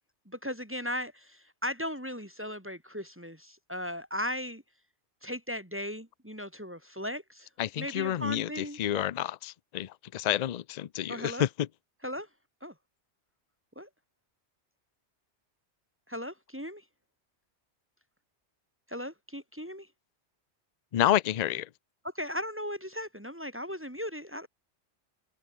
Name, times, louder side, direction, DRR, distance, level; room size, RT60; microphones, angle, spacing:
voice 1, 0.3-4.6 5.2-7.5 7.8-9.1 11.1-11.4 12.0-12.3 12.6-12.7 13.8-13.9 16.1-16.8 18.9-19.9 22.0-24.5, equal, 10° right, 2.5 m, -37 dB
voice 2, 7.6-11.5 20.9-21.7, left 12 dB, 50° left, 0.5 m, -29 dB
open air
omnidirectional pair, 1.2 m